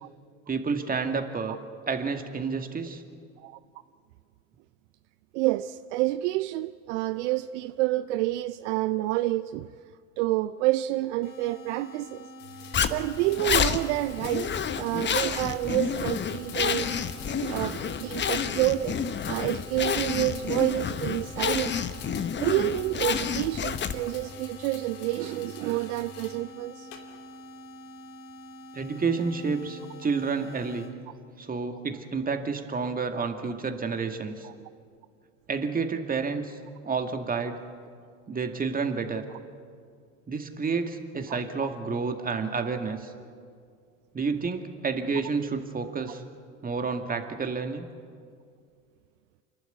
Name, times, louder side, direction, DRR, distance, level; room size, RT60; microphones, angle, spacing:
voice 1, 0.5-1.6 1.9-3.0 28.7-30.9 31.4-34.5 35.5-36.6 36.8-37.6 38.3-39.2 40.3-43.1 44.1-46.2 46.6-47.9, right 4 dB, 20° right, 6 dB, 2.2 m, -30 dB
voice 2, 5.3-9.7 10.2-12.3 12.9-16.9 17.3-19.0 19.3-21.8 22.4-26.9 34.4-34.5 41.3-41.7, right 17 dB, 65° right, 14 dB, 0.6 m, -28 dB
sound 1, 11.2-30.9, equal, 50° left, 3.5 m, -46 dB
sound 2, 12.4-26.4 26.9-27.5, left 6 dB, 70° left, 2.5 m, -47 dB
Zipper (clothing), 12.7-24.2, left 7 dB, 30° left, 1.1 m, -29 dB
27.5 x 12.0 x 9.5 m, 2.2 s
hypercardioid pair, 75°, 39 cm